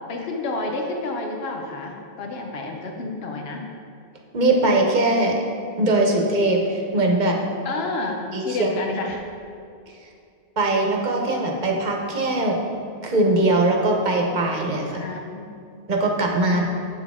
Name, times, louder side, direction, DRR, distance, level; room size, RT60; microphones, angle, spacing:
voice 1, 0.1-3.6 7.6-9.2 14.9-15.5 16.4-16.6, left 3 dB, 80° left, 2 dB, 1.0 m, -30 dB
voice 2, 4.3-5.4 5.8-7.4 8.3-8.7 10.6-12.6 13.0-15.1 15.9-16.6, right 2 dB, 50° right, 1 dB, 1.0 m, -21 dB
8.2 x 6.1 x 3.6 m, 2.5 s
omnidirectional pair, 1.0 m